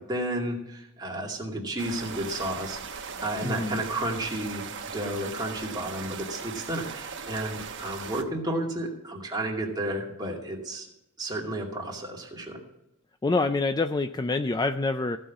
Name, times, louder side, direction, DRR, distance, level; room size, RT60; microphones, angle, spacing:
voice 1, 0.1-2.8 3.2-4.6 4.9-10.9 11.2-12.6, right 1 dB, 20° right, -2 dB, 2.4 m, -32 dB
sound 1, 1.8-8.2, right 6 dB, 55° right, 1.1 m, -38 dB
voice 2, 3.4-3.8 13.2-15.2, left 3 dB, 20° left, 9 dB, 0.3 m, -26 dB
15.5 x 5.6 x 7.2 m, 0.87 s
head